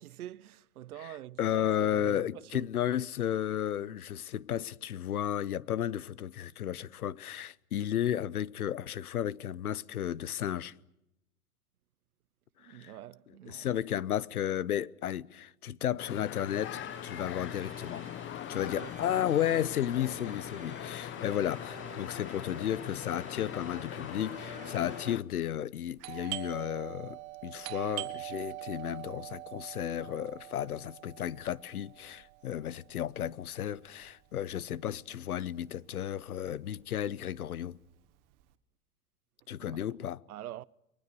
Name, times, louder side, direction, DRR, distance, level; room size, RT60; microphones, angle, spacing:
voice 1, 0.0-2.2 2.5-2.6 12.6-13.7 18.7-18.9 39.6-39.8 40.3-40.6, right 13 dB, 85° right, 0.8 m, -45 dB
voice 2, 1.0-10.7 12.6-13.0 13.4-18.0 18.5-37.8 39.5-40.2, left 10 dB, 90° left, 1.0 m, -33 dB
sound 1, 16.0-25.2, left 12 dB, 25° left, 1.0 m, -41 dB
sound 2, 16.5-25.2, right 6 dB, 15° right, 1.6 m, -51 dB
Doorbell, 26.0-35.4 35.6-35.7 36.4-36.7 37.0-38.4, right 20 dB, 55° right, 1.9 m, -43 dB
30.0 x 22.5 x 6.9 m
hypercardioid pair, 115°, 43 cm